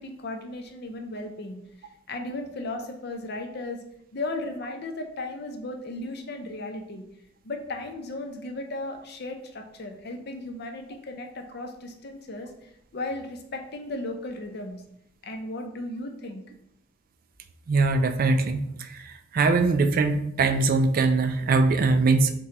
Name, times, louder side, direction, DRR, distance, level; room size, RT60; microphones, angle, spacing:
voice 1, 0.0-1.6 2.1-3.8 4.1-7.0 7.4-14.8 15.2-16.4, left 2 dB, 55° left, 4 dB, 0.6 m, -35 dB
voice 2, 17.7-18.6 18.9-22.3, right 3 dB, 50° right, 8 dB, 0.3 m, -22 dB
5.7 x 2.3 x 2.9 m, 0.77 s
head